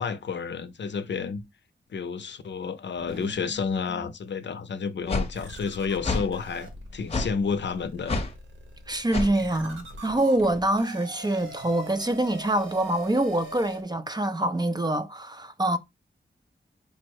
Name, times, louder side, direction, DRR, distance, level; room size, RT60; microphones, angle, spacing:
voice 1, 0.0-1.4 1.9-8.2, left 5 dB, 65° left, 0.6 m, -30 dB
sound 1, 3.0-4.1 4.7-4.8 5.3-13.8, right 2 dB, 80° right, 1.3 m, -43 dB
sound 2, 5.1-5.3 6.0-6.3 7.1-7.3 8.1-8.3 9.1-9.3, left 3 dB, 30° left, 0.8 m, -27 dB
voice 2, 8.9-15.8, right 1 dB, 20° right, 0.5 m, -25 dB
5.1 x 2.0 x 4.6 m
wide cardioid pair, 140°, 20 cm